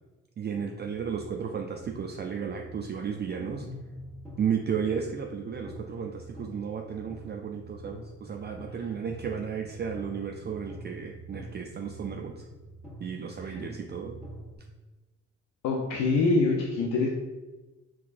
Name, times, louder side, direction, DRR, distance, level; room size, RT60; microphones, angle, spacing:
voice 1, 0.4-3.7 4.4-12.5 13.0-14.2, right 7 dB, 35° right, 2 dB, 0.4 m, -33 dB
sound 1, 0.6-14.6, right 1 dB, 5° left, 1.4 m, -45 dB
voice 2, 15.6-17.1, left 3 dB, 80° left, 0 dB, 0.6 m, -25 dB
4.6 x 3.6 x 2.5 m, 1.2 s
cardioid pair, 90°, 30 cm